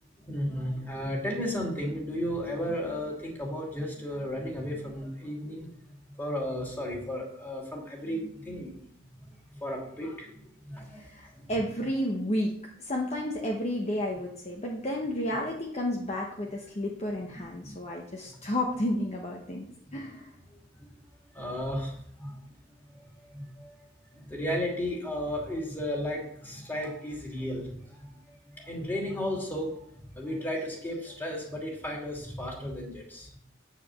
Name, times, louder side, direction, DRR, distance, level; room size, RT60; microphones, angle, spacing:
voice 1, 0.2-5.7 6.2-8.8 9.6-11.0 11.3-11.4 17.3-17.7 19.9-20.0 21.3-22.4 22.9-23.8 24.1-27.7 28.0-29.8 30.1-33.3, equal, 10° left, -2 dB, 2.5 m, -34 dB
voice 2, 10.9-12.5 12.8-19.7 19.9-20.3, left 1 dB, 35° left, -1 dB, 1.0 m, -31 dB
8.8 x 5.0 x 6.9 m, 0.66 s
head